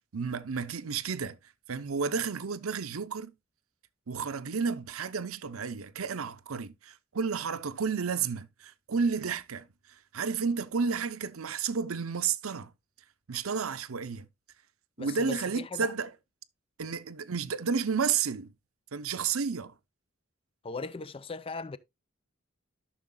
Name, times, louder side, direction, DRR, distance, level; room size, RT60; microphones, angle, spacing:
voice 1, 0.1-1.4 1.7-3.3 4.1-9.6 10.1-12.7 13.3-14.3 15.0-16.1 16.8-18.5 18.9-19.7, right 5 dB, 85° right, 0.7 m, -31 dB
voice 2, 15.0-15.9 20.6-21.8, left 4 dB, 25° left, 0.4 m, -38 dB
13.5 x 6.3 x 2.3 m
head